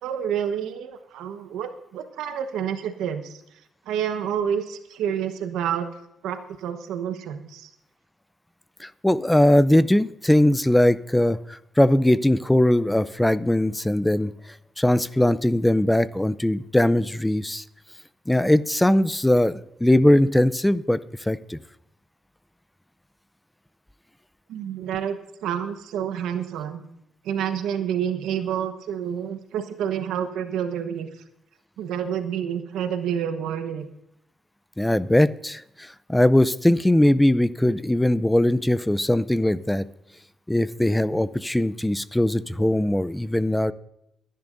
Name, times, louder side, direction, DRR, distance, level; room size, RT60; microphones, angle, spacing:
voice 1, 0.0-3.4 3.9-5.9 6.2-7.7 24.5-26.8 27.2-31.1 31.8-33.8, right 9 dB, 85° right, 8 dB, 1.1 m, -28 dB
voice 2, 8.8-14.3 14.8-17.6 18.3-21.0 21.3-21.6 34.8-39.8 40.5-43.7, left 1 dB, 5° left, 16 dB, 0.5 m, -20 dB
23.0 x 10.5 x 2.6 m, 0.79 s
cardioid pair, 90°, 0 cm